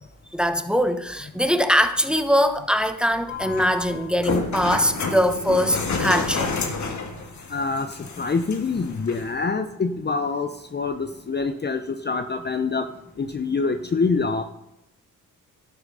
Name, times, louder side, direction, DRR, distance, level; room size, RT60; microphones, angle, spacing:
voice 1, 0.3-6.6, equal, ahead, 8 dB, 1.1 m, -22 dB
sound 1, 3.3-9.3, left 4 dB, 50° left, 1.7 m, -30 dB
voice 2, 7.5-7.9 8.2-12.9 13.2-14.4, left 4 dB, 30° left, 8 dB, 0.7 m, -25 dB
11.5 x 6.7 x 5.5 m, 0.88 s
cardioid pair, 70°, 36 cm